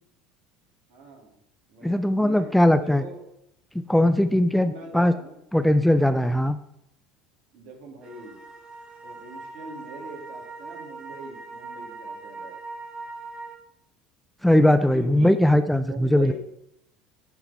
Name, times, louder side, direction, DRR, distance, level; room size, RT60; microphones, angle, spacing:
voice 1, 0.9-1.3 1.7-3.2 4.6-5.4 7.5-8.4 9.0-12.6 14.9-15.4 15.8-16.3, right 2 dB, 60° right, -1 dB, 2.6 m, -41 dB
voice 2, 1.8-3.0 3.9-5.1 5.5-6.6 14.4-16.3, left 1 dB, 5° left, 9 dB, 0.5 m, -19 dB
sound 1, 8.0-13.6, right 3 dB, 30° right, 1.4 m, -40 dB
11.5 x 3.9 x 4.3 m, 0.77 s
hypercardioid pair, 70°, 3 cm